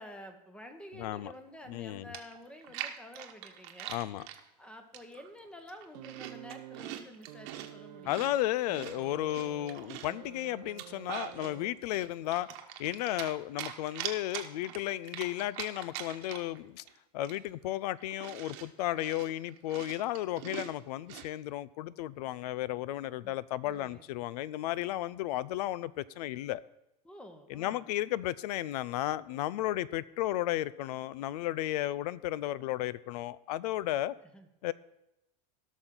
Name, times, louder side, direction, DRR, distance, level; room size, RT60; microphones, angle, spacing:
voice 1, 0.0-4.2 4.6-8.3 23.6-24.3 27.0-27.9 34.3-34.5, equal, 5° left, 6 dB, 1.0 m, -50 dB
voice 2, 1.0-1.3 1.7-2.1 3.9-4.3 8.0-12.5 12.8-16.8 17.1-26.6 27.5-34.1 34.6-34.7, left 14 dB, 75° left, 20 dB, 0.5 m, -34 dB
Chewing mastication, 1.8-1.9 2.1-4.4 4.9-5.3 5.6-7.7 8.1-10.2 10.6-11.5 11.9-13.3 13.6-16.6 16.9-17.0 17.2-21.3, right 12 dB, 55° right, 1.1 m, -42 dB
sound 1, 5.9-12.1 13.2-13.3, right 14 dB, 80° right, 0.6 m, -49 dB
17.0 x 6.3 x 3.9 m, 0.89 s
supercardioid pair, 140°, 20 cm